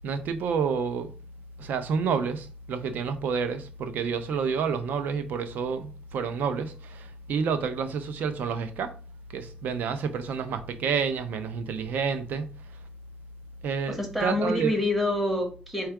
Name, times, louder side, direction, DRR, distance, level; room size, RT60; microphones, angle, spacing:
voice 1, 0.0-1.1 1.6-9.0 9.3-12.5 13.6-14.7, right 6 dB, 90° right, 0.5 m, -29 dB
voice 2, 13.9-15.9, left 1 dB, 5° right, 1.3 m, -27 dB
4.4 x 2.3 x 4.6 m
cardioid pair, 125°, 3 cm